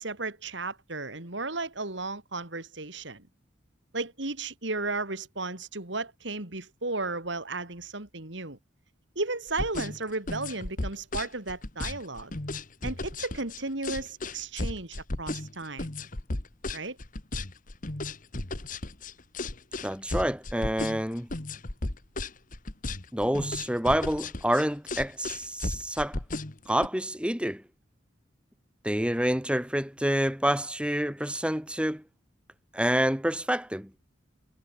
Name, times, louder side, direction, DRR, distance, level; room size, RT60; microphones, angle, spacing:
voice 1, 0.0-3.3 3.9-8.6 9.1-12.3 12.8-15.9 16.7-17.0, right 3 dB, 65° right, 3.1 m, -34 dB
sound 1, 9.5-26.9, left 2 dB, 40° left, 1.6 m, -34 dB
voice 2, 19.8-21.3 23.1-26.2 26.7-27.6 28.8-32.0 32.7-33.9, equal, 5° right, 3.4 m, -28 dB
head